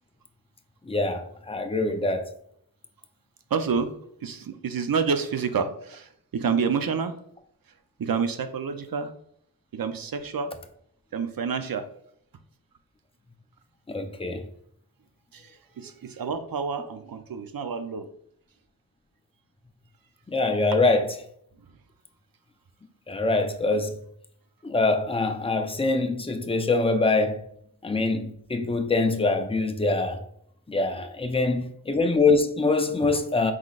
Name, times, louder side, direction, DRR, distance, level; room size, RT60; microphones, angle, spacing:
voice 1, 0.8-2.3 13.9-14.5 20.3-21.2 23.1-24.0 24.6-27.5 27.8-30.2 30.7-33.5, left 3 dB, 10° left, 0.6 m, -24 dB
voice 2, 3.5-3.9 4.2-7.1 8.0-9.1 9.7-10.5 11.1-11.9 15.3-15.5 15.8-18.1, right 6 dB, 45° right, 0.6 m, -28 dB
4.8 x 3.8 x 2.4 m
cardioid pair, 45°, 48 cm